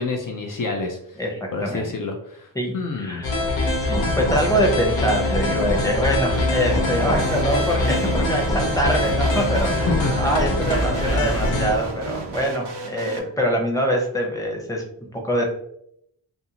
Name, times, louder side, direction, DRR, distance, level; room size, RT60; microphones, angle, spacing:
voice 1, 0.0-1.2 1.5-3.2 9.9-10.1, left 3 dB, 45° left, 2 dB, 0.5 m, -28 dB
voice 2, 1.2-1.9 2.5-3.3 3.8-9.9 10.2-15.4, equal, 10° left, 0 dB, 0.7 m, -24 dB
sound 1, 3.2-11.7, left 2 dB, 80° left, 0.8 m, -23 dB
sound 2, 6.3-13.2, right 3 dB, 65° right, 0.6 m, -34 dB
sound 3, 6.6-12.5, right 3 dB, 25° right, 0.3 m, -37 dB
2.5 x 2.4 x 2.8 m, 0.71 s
wide cardioid pair, 80°, 45 cm